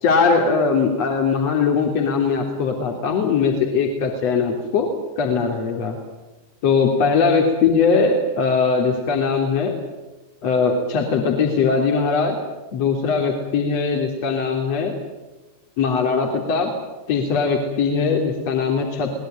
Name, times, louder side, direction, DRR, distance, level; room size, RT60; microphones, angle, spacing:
voice 1, 0.0-4.9 5.2-6.0 6.6-9.8 10.4-12.4 12.7-14.9 15.8-16.8 17.1-19.2, left 5 dB, 45° left, 3 dB, 3.2 m, -20 dB
22.0 x 20.5 x 9.2 m, 1.1 s
figure-of-eight pair, 90°, 0 cm